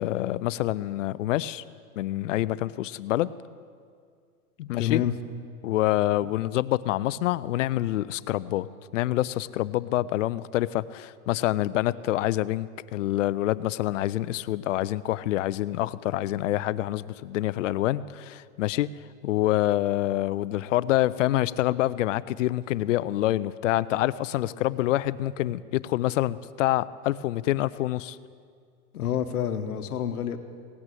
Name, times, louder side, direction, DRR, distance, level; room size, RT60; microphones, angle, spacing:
voice 1, 0.0-1.6 2.0-3.3 4.7-5.0 5.6-8.7 8.9-18.9 19.2-28.2, left 15 dB, 60° left, 18 dB, 0.5 m, -26 dB
voice 2, 4.8-5.1 28.9-30.4, left 10 dB, 80° left, 8 dB, 1.1 m, -28 dB
18.0 x 6.1 x 7.7 m, 2.1 s
hypercardioid pair, 140°, 44 cm